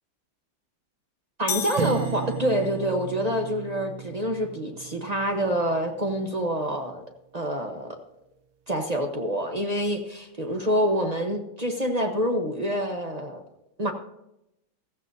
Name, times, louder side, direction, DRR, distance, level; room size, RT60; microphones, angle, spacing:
voice 1, 1.4-7.0 7.3-8.0 8.7-13.4 13.8-13.9, equal, 30° right, 3 dB, 0.8 m, -27 dB
sound 1, 1.5-2.9, left 12 dB, 70° left, 0.9 m, -34 dB
sound 2, 1.8-6.1, right 9 dB, 90° right, 1.6 m, -35 dB
15.0 x 14.5 x 2.7 m, 0.83 s
omnidirectional pair, 2.0 m